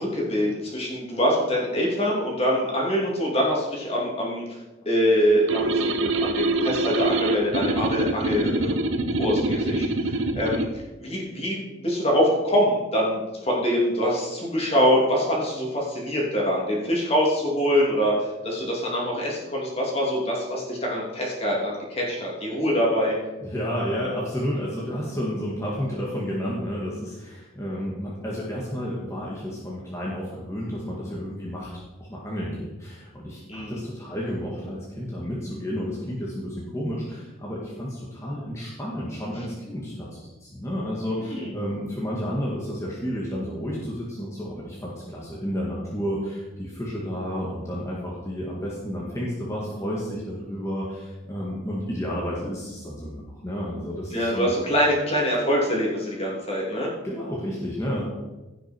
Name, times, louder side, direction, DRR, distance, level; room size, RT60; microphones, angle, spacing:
voice 1, 0.0-4.4 4.8-8.8 9.1-10.7 11.0-23.2 33.5-33.8 41.2-41.5 54.1-56.9, equal, 30° left, -3 dB, 2.9 m, -24 dB
sound 1, 5.5-10.7, right 2 dB, 85° right, 1.0 m, -25 dB
voice 2, 23.4-54.5 57.0-58.0, equal, 15° left, -5 dB, 1.8 m, -31 dB
16.0 x 6.6 x 4.5 m, 1.1 s
head